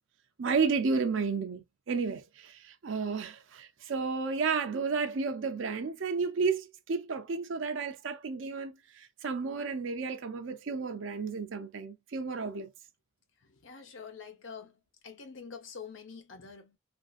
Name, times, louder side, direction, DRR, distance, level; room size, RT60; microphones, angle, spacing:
voice 1, 0.4-12.7, right 5 dB, 65° right, 0.5 m, -32 dB
voice 2, 13.4-16.8, left 5 dB, 65° left, 0.7 m, -46 dB
3.1 x 2.6 x 2.4 m
head